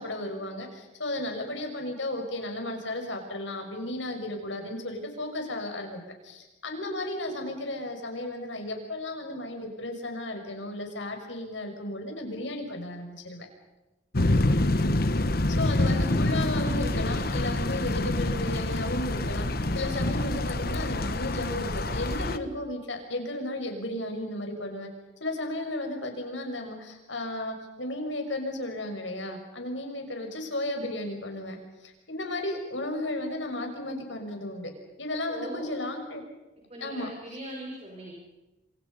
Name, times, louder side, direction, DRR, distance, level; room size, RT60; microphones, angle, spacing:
voice 1, 0.0-13.5 15.5-19.5 19.7-24.9 25.2-31.6 31.8-34.7 35.0-36.2 36.8-37.1, left 1 dB, 80° left, 4 dB, 6.3 m, -34 dB
sound 1, 14.1-22.4, left 1 dB, 55° left, 1.2 m, -26 dB
voice 2, 35.3-35.7 36.7-38.1, right 1 dB, 35° right, -1 dB, 5.8 m, -40 dB
27.5 x 27.0 x 5.6 m, 1.1 s
head